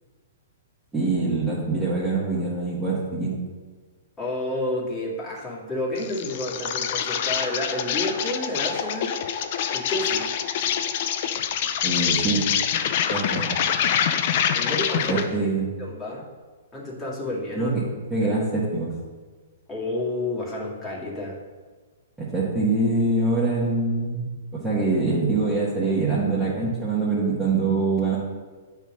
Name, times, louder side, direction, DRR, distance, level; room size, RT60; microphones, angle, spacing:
voice 1, 0.9-3.4 11.8-12.5 13.1-13.5 15.1-15.7 17.5-17.8 18.1-18.9 22.2-24.2 24.5-28.2, right 3 dB, 5° right, -10 dB, 1.8 m, -24 dB
voice 2, 4.2-9.2 9.7-10.3 14.5-15.2 15.8-16.2 16.7-17.7 18.2-18.3 19.7-21.4, left 1 dB, 20° left, -5 dB, 2.1 m, -30 dB
Insect, 6.0-15.3, left 8 dB, 50° left, 0.5 m, -25 dB
7.9 x 3.7 x 6.1 m, 1.4 s
hypercardioid pair, 120°, 0 cm